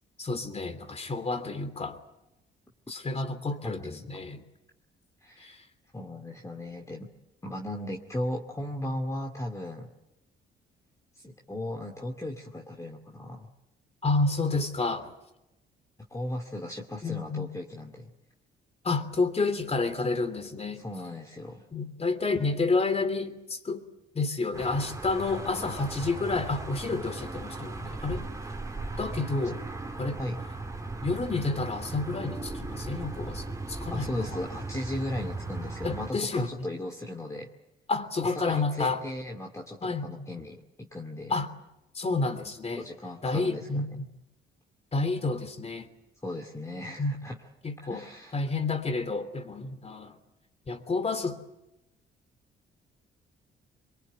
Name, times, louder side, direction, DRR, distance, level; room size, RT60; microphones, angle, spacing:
voice 1, 0.2-2.0 2.9-4.4 5.4-5.6 14.0-15.1 17.0-17.5 18.8-20.8 21.7-23.8 24.1-28.3 29.0-29.6 30.0-30.2 31.0-34.1 35.8-36.7 37.9-39.0 39.8-40.3 41.3-41.5 41.9-42.9 43.2-44.1 44.9-45.9 47.0-47.1 47.6-48.1 48.3-50.1 50.7-51.4, left 3 dB, 30° left, 9 dB, 3.1 m, -30 dB
voice 2, 3.6-4.1 5.2-5.6 5.9-7.1 7.4-9.9 11.2-13.5 16.1-18.1 20.7-21.7 30.2-30.4 33.9-37.5 38.4-41.3 42.8-44.0 46.2-47.4 47.8-48.4, left 1 dB, 15° left, 1 dB, 2.4 m, -36 dB
sound 1, 24.5-36.1, right 2 dB, 15° right, 2.9 m, -37 dB
23.5 x 23.5 x 9.3 m, 0.92 s
cardioid pair, 90°, 20 cm